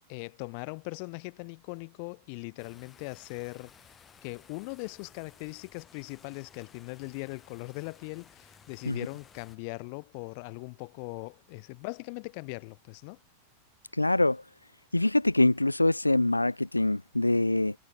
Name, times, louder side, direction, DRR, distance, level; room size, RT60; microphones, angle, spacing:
voice 1, 0.1-4.0 4.2-13.2, left 37 dB, 45° left, 2.9 m, -40 dB
sound 1, 2.6-9.6, left 7 dB, 20° left, 6.0 m, -57 dB
voice 2, 13.9-14.4 14.9-17.7, left 2 dB, 85° left, 0.4 m, -24 dB
figure-of-eight pair, 90°, 0 cm